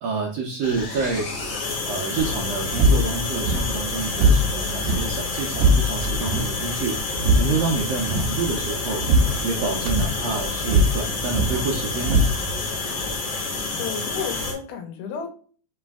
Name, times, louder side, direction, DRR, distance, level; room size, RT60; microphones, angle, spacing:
voice 1, 0.0-1.3 1.8-6.9 7.4-9.0 9.4-12.2, right 4 dB, 90° right, -1 dB, 1.4 m, -28 dB
sound 1, 0.6-14.5, left 3 dB, 60° left, 1.2 m, -29 dB
sound 2, 2.2-12.8, right 1 dB, 75° right, 1.7 m, -23 dB
voice 2, 13.2-13.5 13.8-15.3, left 7 dB, 80° left, 4 dB, 2.3 m, -32 dB
4.8 x 3.1 x 3.4 m, 0.43 s
omnidirectional pair, 3.7 m